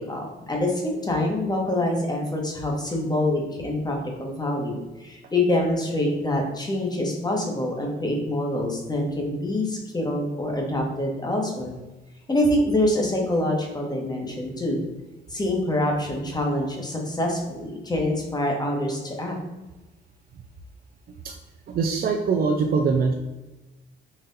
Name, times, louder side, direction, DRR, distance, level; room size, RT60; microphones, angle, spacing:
voice 1, 0.0-11.7 12.3-14.8 15.3-19.4, left 1 dB, 20° left, 0 dB, 1.1 m, -25 dB
voice 2, 21.7-23.1, right 5 dB, 50° right, 3 dB, 0.4 m, -22 dB
4.1 x 2.5 x 3.9 m, 1.1 s
cardioid pair, 90°, 20 cm